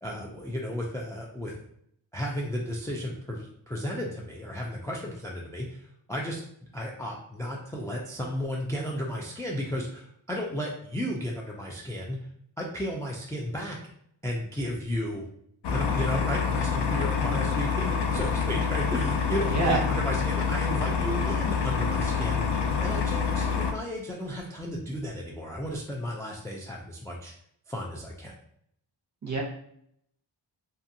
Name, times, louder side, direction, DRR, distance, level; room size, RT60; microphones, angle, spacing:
voice 1, 0.0-1.5 2.1-6.4 6.7-12.2 12.6-13.8 14.2-15.2 15.7-27.3 27.7-28.3, equal, 10° left, -1 dB, 0.3 m, -34 dB
sound 1, 15.6-23.7, left 6 dB, 65° left, 0.5 m, -27 dB
voice 2, 19.5-19.8 29.2-29.4, right 3 dB, 40° right, -2 dB, 0.9 m, -25 dB
2.6 x 2.4 x 2.7 m, 0.69 s
wide cardioid pair, 75°, 44 cm